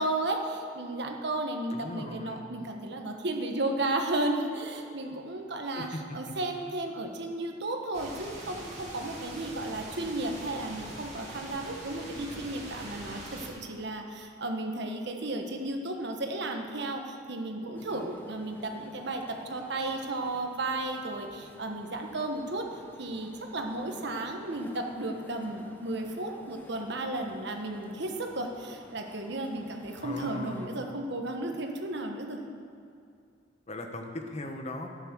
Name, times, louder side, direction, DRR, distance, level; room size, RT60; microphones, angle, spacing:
voice 1, 0.0-22.6 23.0-32.4, right 2 dB, 65° right, 3 dB, 1.3 m, -34 dB
voice 2, 1.7-2.4 5.7-5.9 6.6-6.7 30.0-30.7 33.7-34.9, left 1 dB, 35° left, 4 dB, 1.1 m, -38 dB
sound 1, 7.9-13.5, right 1 dB, 35° right, 2.7 m, -43 dB
sound 2, 17.7-30.7, left 1 dB, 10° left, 0.9 m, -53 dB
12.0 x 9.1 x 6.3 m, 2.4 s
head